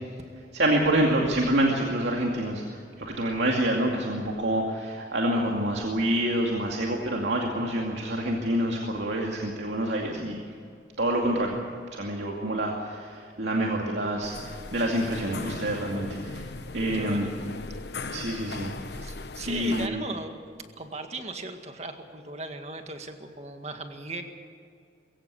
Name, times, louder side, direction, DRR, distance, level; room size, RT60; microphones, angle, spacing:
voice 1, 0.5-10.4 11.0-11.6 11.9-16.5 16.7-17.3 18.1-19.1 19.5-20.0, right 1 dB, 80° right, -1 dB, 2.4 m, -27 dB
sound 1, 14.2-19.9, left 3 dB, 70° left, 0.9 m, -38 dB
voice 2, 16.9-17.3 17.8-18.1 19.0-20.3 20.8-24.2, right 2 dB, 35° right, 5 dB, 1.9 m, -38 dB
22.5 x 16.5 x 8.4 m, 2.3 s
head